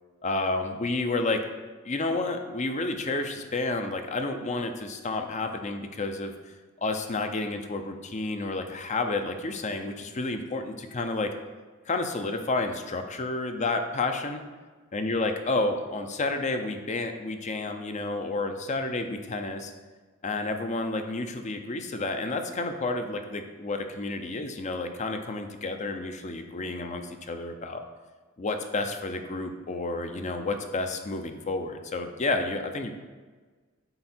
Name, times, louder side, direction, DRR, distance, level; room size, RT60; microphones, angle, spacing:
voice 1, 0.2-1.4 1.8-6.3 6.8-11.3 11.9-14.4 14.9-19.7 20.2-27.8 28.4-32.9, left 2 dB, 35° left, 6 dB, 0.6 m, -30 dB
7.9 x 4.9 x 4.4 m, 1.4 s
head